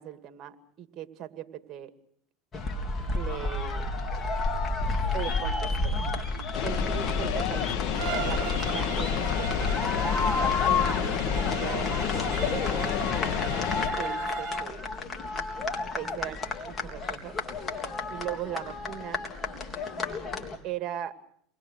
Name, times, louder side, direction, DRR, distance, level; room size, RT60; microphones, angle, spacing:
voice 1, 0.0-1.9 3.1-3.9 5.1-6.0 6.6-10.0 10.7-12.9 13.2-13.4 14.0-14.8 15.9-17.4 18.1-19.3 20.6-21.1, right 12 dB, 45° right, 9 dB, 2.3 m, -39 dB
sound 1, 2.5-20.6, left 3 dB, 30° left, 3.8 m, -31 dB
sound 2, 6.5-13.9, left 11 dB, 60° left, 2.1 m, -30 dB
Bowed string instrument, 7.9-14.7, right 17 dB, 65° right, 0.9 m, -38 dB
28.0 x 21.5 x 6.4 m, 0.64 s
supercardioid pair, 100°, 0 cm